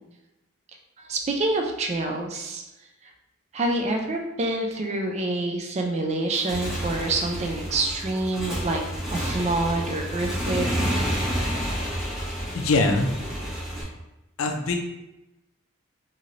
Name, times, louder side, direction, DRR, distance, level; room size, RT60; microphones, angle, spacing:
voice 1, 1.0-2.6 3.5-8.8 9.1-10.7, right 2 dB, 30° right, 2 dB, 0.3 m, -27 dB
Motorcycle / Engine, 6.2-13.8, equal, ahead, 0.8 m, -30 dB
voice 2, 12.5-13.1 14.4-14.8, left 2 dB, 65° left, 4 dB, 0.4 m, -22 dB
3.1 x 2.8 x 2.5 m, 0.97 s
head